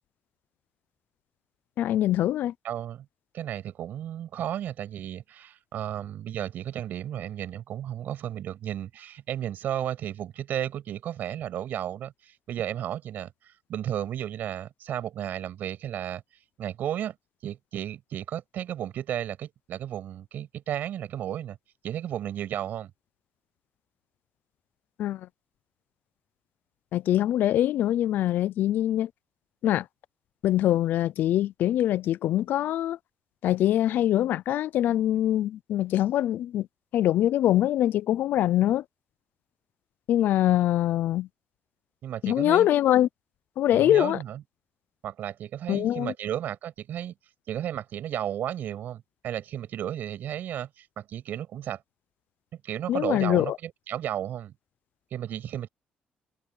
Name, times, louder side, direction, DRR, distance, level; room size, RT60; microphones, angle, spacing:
voice 1, 1.8-2.5 25.0-25.3 26.9-29.1 29.6-29.8 30.4-33.0 33.4-36.7 36.9-38.8 40.1-41.3 42.2-43.1 43.6-44.2 45.7-46.1 52.9-53.6, left 12 dB, 70° left, 0.5 m, -23 dB
voice 2, 2.6-3.1 3.3-13.3 13.7-16.2 16.6-17.2 17.4-21.6 21.8-22.9 42.0-42.7 43.7-44.4 45.0-47.1 47.5-51.8 52.6-54.5 55.1-55.7, right 11 dB, 65° right, 7.4 m, -33 dB
cardioid pair, 150°, 3 cm